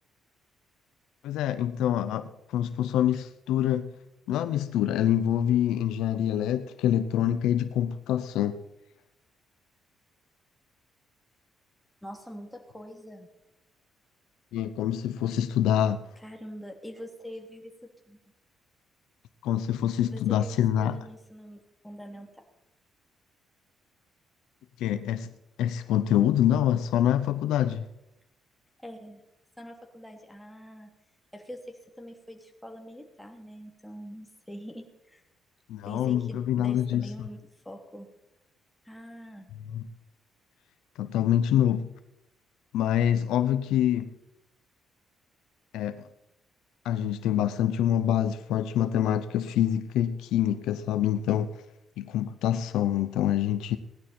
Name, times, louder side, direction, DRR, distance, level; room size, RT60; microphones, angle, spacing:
voice 1, 1.2-4.0 4.3-8.6 14.5-16.0 19.4-21.0 24.8-25.3 25.6-27.9 35.7-37.1 39.7-39.9 41.0-41.9 42.7-44.1 45.7-46.0 46.8-51.5 52.0-53.8, left 10 dB, 90° left, 0.7 m, -26 dB
voice 2, 12.0-13.3 16.2-18.2 20.1-22.3 28.8-29.2 29.6-30.9 31.3-35.2 35.8-37.4 37.6-38.1 38.8-39.5, equal, 5° left, 3.1 m, -44 dB
18.0 x 11.0 x 4.4 m
cardioid pair, 90°, 0 cm